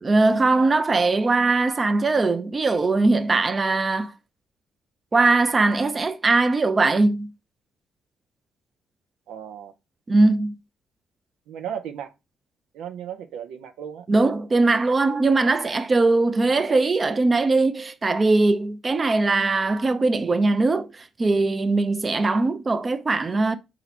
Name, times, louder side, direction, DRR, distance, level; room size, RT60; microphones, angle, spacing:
voice 1, 0.0-4.1 5.1-7.3 10.1-10.5 14.1-23.6, right 3 dB, 30° right, 0.5 m, -20 dB
voice 2, 9.3-9.7 11.5-12.1 12.7-14.1, right 9 dB, 90° right, 0.6 m, -35 dB
4.3 x 2.8 x 4.1 m
cardioid pair, 90°, 0 cm